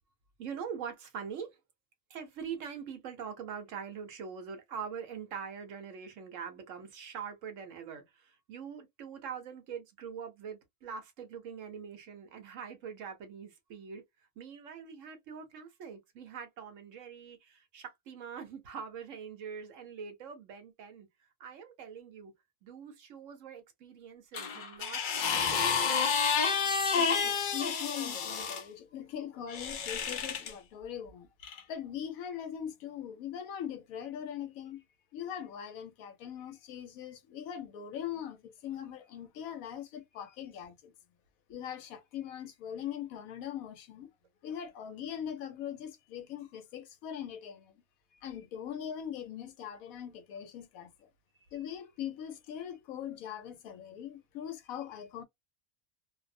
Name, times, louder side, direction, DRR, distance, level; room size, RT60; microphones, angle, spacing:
voice 1, 0.4-1.5 2.1-14.0 14.4-21.1 21.4-22.3 22.6-25.7, right 7 dB, 65° right, 1.0 m, -43 dB
sound 1, 24.3-28.6 29.5-30.5 31.4-31.6, left 6 dB, 60° left, 0.5 m, -30 dB
voice 2, 27.0-31.3 31.6-34.8 35.1-40.9 41.5-44.1 44.4-47.7 48.2-51.1 51.5-55.2, left 9 dB, 80° left, 1.0 m, -41 dB
2.6 x 2.0 x 2.5 m
omnidirectional pair, 1.5 m